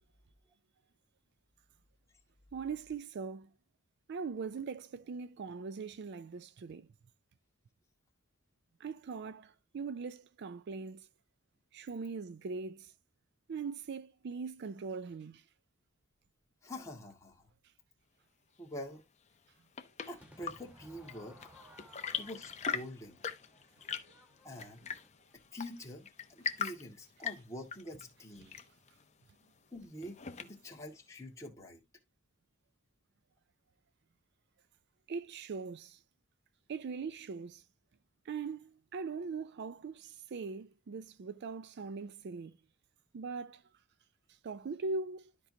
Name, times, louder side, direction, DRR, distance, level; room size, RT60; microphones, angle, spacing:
voice 1, 2.5-3.5 4.1-6.9 8.8-11.1 11.7-12.9 13.5-15.5 28.4-28.5 35.1-36.0 36.7-37.6 38.2-42.6 43.1-43.6 44.3-45.3, right 4 dB, 50° right, 0.4 m, -41 dB
voice 2, 16.6-17.5 18.6-19.0 20.1-21.5 22.2-23.2 24.4-24.9 25.5-28.5 29.7-31.8, left 1 dB, 15° left, 2.0 m, -46 dB
Chirp tweet / Engine / Tap, 19.3-30.8, left 6 dB, 30° left, 0.8 m, -42 dB
Crowd / Fireworks, 20.2-25.4, equal, 5° right, 1.3 m, -60 dB
12.5 x 4.6 x 2.8 m
head